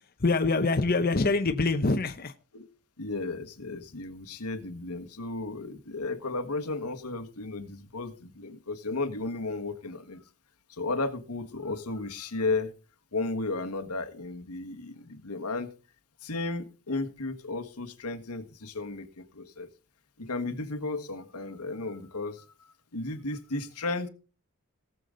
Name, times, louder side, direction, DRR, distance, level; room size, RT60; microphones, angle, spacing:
voice 1, 0.2-2.3, left 3 dB, 40° left, 0.8 m, -25 dB
voice 2, 3.0-10.2 10.7-12.7 13.1-15.7 16.2-19.7 20.2-22.5 22.9-24.1, left 3 dB, 90° left, 1.5 m, -34 dB
18.5 x 7.0 x 3.8 m
head